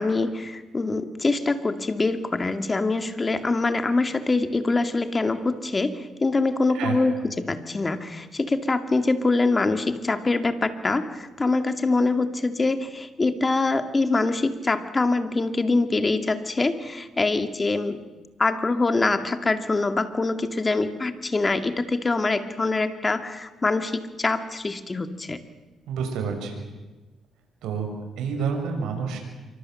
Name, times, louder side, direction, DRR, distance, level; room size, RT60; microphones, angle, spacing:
voice 1, 0.0-18.0 18.4-25.4, left 3 dB, 25° left, 8 dB, 2.2 m, -24 dB
voice 2, 6.7-7.1 25.9-26.6 27.6-29.2, right 6 dB, 85° right, 4 dB, 6.4 m, -29 dB
26.5 x 24.5 x 7.8 m, 1.2 s
cardioid pair, 90°, 0 cm